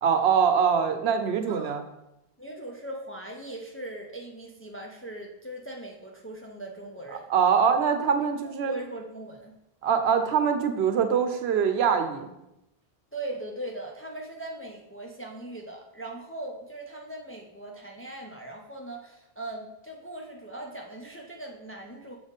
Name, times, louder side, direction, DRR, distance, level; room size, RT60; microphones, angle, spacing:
voice 1, 0.0-1.8 7.3-8.7 9.8-12.3, right 7 dB, 85° right, 7 dB, 0.9 m, -23 dB
voice 2, 1.5-1.8 2.4-7.3 8.2-8.3 8.7-9.5 13.1-22.2, right 1 dB, 20° left, 0 dB, 0.4 m, -39 dB
6.8 x 3.5 x 3.9 m, 0.89 s
omnidirectional pair, 1.0 m